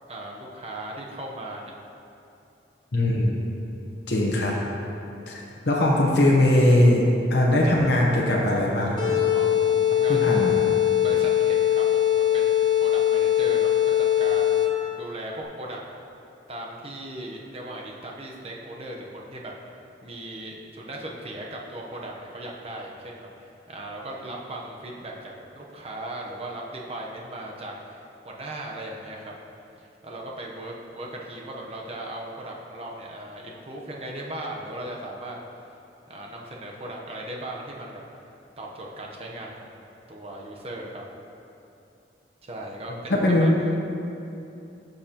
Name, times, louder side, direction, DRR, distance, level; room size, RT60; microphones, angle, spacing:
voice 1, 0.1-1.7 5.3-5.7 9.3-10.6 11.0-15.8 16.5-19.7 20.0-29.3 29.8-35.4 36.1-38.0 38.6-39.8 40.1-41.2 42.4-43.5, right 1 dB, 35° right, -1 dB, 0.8 m, -38 dB
voice 2, 2.9-3.4 4.1-4.5 5.3-7.0 7.3-9.2 10.1-10.6 43.1-43.5, left 1 dB, 75° left, -3 dB, 1.0 m, -20 dB
sound 1, 9.0-14.9, left 11 dB, 25° left, 1.1 m, -21 dB
12.0 x 6.7 x 2.9 m, 2.8 s
head